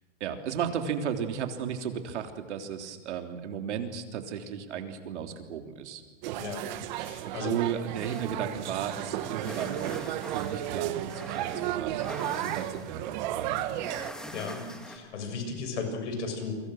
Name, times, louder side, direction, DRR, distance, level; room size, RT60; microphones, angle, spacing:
voice 1, 0.2-6.0 7.2-10.0 10.3-13.7, right 8 dB, 75° right, 5 dB, 3.5 m, -34 dB
sound 1, 6.2-14.1, right 13 dB, 40° right, 1.3 m, -34 dB
voice 2, 6.4-7.6 14.3-16.6, left 4 dB, 80° left, 5 dB, 6.9 m, -36 dB
sound 2, 7.9-15.0, equal, ahead, 1.7 m, -45 dB
29.5 x 24.0 x 6.4 m, 1.3 s
supercardioid pair, 170°, 35 cm